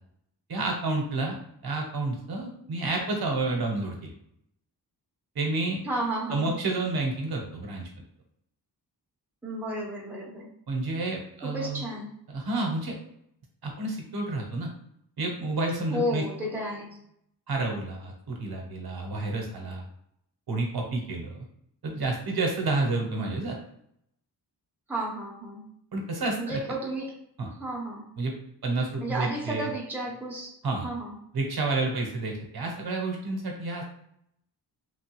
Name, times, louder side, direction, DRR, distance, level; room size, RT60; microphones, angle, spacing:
voice 1, 0.5-1.4 1.6-4.1 5.3-5.8 6.3-7.9 10.7-11.8 12.3-12.9 13.6-14.7 15.2-16.2 17.5-19.8 20.5-21.4 21.8-23.6 25.9-26.6 27.4-27.5 28.2-28.3 28.6-29.7 30.6-30.9 31.3-33.8, right 2 dB, 65° right, 1 dB, 0.8 m, -30 dB
voice 2, 5.8-6.5 9.4-10.5 11.4-12.1 15.9-16.9 24.9-25.7 26.4-27.2 27.6-28.1 29.0-30.5 30.8-31.2, right 1 dB, 5° right, -3 dB, 0.7 m, -32 dB
3.1 x 2.2 x 3.0 m, 0.73 s
wide cardioid pair, 105°, 41 cm